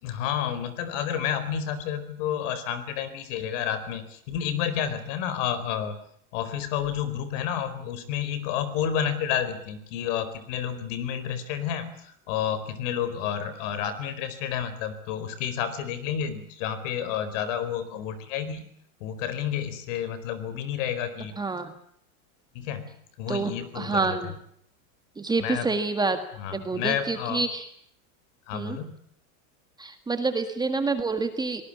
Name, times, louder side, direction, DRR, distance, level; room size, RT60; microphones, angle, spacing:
voice 1, 0.0-6.0 6.3-18.7 19.0-21.4 22.5-22.9 23.2-24.3 25.4-25.7 26.4-27.5 28.5-28.9, left 9 dB, 55° left, 13 dB, 4.4 m, -30 dB
voice 2, 21.4-21.7 23.3-24.3 25.2-26.2 26.5-27.6 28.5-28.8 29.8-31.6, right 3 dB, 10° right, 8 dB, 1.7 m, -27 dB
23.5 x 19.5 x 8.7 m, 0.68 s
supercardioid pair, 145°, 43 cm